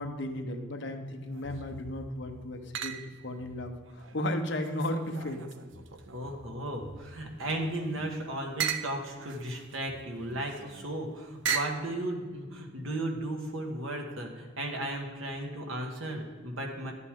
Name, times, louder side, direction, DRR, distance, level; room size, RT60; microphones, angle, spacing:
voice 1, 0.0-5.5, left 1 dB, 60° left, 5 dB, 1.0 m, -35 dB
sound 1, 1.2-1.8 2.7-3.3 3.8-6.5 7.0-11.9, right 7 dB, 65° right, 0.6 m, -38 dB
voice 2, 6.1-16.9, right 1 dB, 85° right, 2 dB, 1.7 m, -35 dB
11.5 x 8.2 x 3.7 m, 1.5 s
head